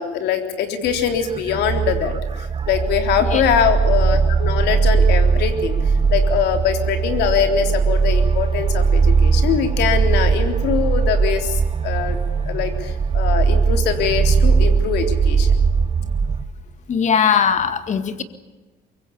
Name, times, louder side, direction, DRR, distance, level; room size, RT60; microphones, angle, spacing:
voice 1, 0.0-12.2 12.5-15.5, left 7 dB, 80° left, 3.6 m, -22 dB
sound 1, 0.8-16.4, right 5 dB, 30° right, 1.4 m, -19 dB
voice 2, 16.9-18.2, left 7 dB, 45° left, 2.1 m, -19 dB
24.0 x 23.0 x 7.1 m
cardioid pair, 110°, 17 cm